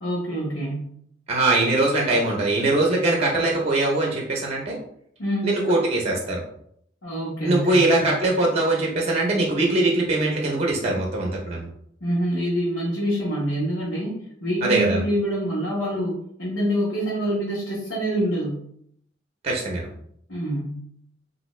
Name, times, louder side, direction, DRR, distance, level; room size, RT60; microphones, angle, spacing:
voice 1, 0.0-0.9 5.2-5.5 7.0-8.1 12.0-14.1 14.4-18.6 20.3-20.8, equal, 90° left, -7 dB, 1.1 m, -26 dB
voice 2, 1.3-4.8 5.4-6.4 7.4-11.7 14.6-15.0 19.4-19.9, right 2 dB, 35° right, -1 dB, 0.6 m, -22 dB
3.3 x 2.6 x 3.1 m, 0.69 s
head